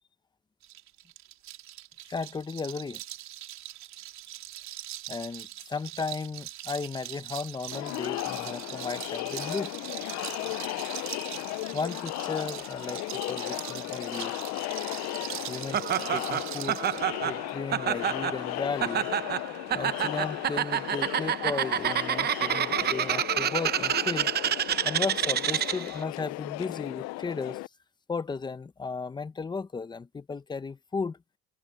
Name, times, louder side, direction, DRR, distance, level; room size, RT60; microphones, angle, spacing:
sound 1, 0.6-17.0, right 14 dB, 60° right, 3.5 m, -41 dB
voice 1, 2.1-3.0 5.1-9.7 11.7-14.4 15.5-15.8 16.1-16.8 17.2-19.1 19.7-24.3 24.8-27.6 28.1-31.2, left 4 dB, 15° left, 0.7 m, -35 dB
Crowd, 7.7-27.7, left 20 dB, 55° left, 0.5 m, -36 dB
Laughter, 15.7-26.0, right 10 dB, 30° right, 0.7 m, -28 dB
cardioid pair, 150°, 32 cm